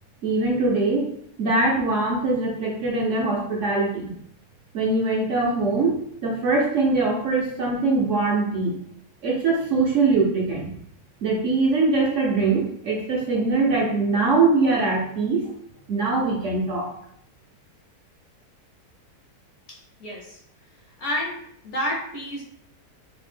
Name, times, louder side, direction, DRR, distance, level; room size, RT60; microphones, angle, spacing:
voice 1, 0.2-1.0 1.4-4.1 4.7-5.9 6.2-8.7 9.2-10.7 11.2-15.4 15.9-16.9, right 3 dB, 65° right, -3 dB, 0.8 m, -22 dB
voice 2, 19.7-20.4 21.0-21.4 21.6-22.4, left 1 dB, 60° left, -3 dB, 0.8 m, -30 dB
3.3 x 2.1 x 3.2 m, 0.68 s
omnidirectional pair, 1.7 m